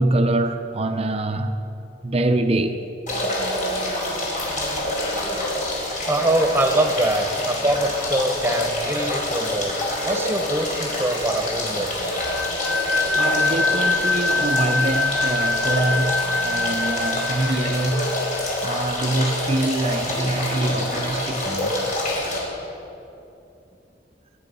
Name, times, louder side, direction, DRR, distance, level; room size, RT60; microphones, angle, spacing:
voice 1, 0.0-1.6 2.0-2.8 13.2-16.1 16.4-18.1 18.6-21.8, right 1 dB, 35° right, 0.6 m, -24 dB
sound 1, 3.1-22.4, left 1 dB, 45° left, 4.4 m, -27 dB
voice 2, 6.1-9.7 10.0-12.1, right 1 dB, 15° right, 1.2 m, -23 dB
sound 2, 12.2-18.6, left 3 dB, 10° left, 2.7 m, -25 dB
23.0 x 11.0 x 5.4 m
head